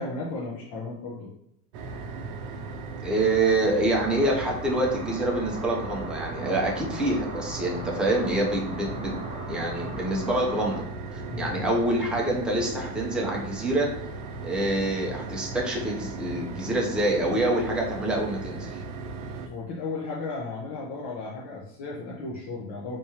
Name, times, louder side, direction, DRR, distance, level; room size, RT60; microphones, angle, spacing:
voice 1, 0.0-1.3 11.3-11.6 19.5-23.0, left 3 dB, 45° left, -4 dB, 0.7 m, -35 dB
sound 1, 1.7-19.5, right 3 dB, 65° right, 0.6 m, -37 dB
voice 2, 3.0-9.2 9.5-10.8 11.1-14.0 14.4-18.8, right 1 dB, ahead, -3 dB, 0.5 m, -26 dB
sound 2, 3.9-10.8, right 1 dB, 25° right, 1.2 m, -39 dB
3.6 x 3.1 x 2.8 m, 0.77 s
cardioid pair, 150°, 42 cm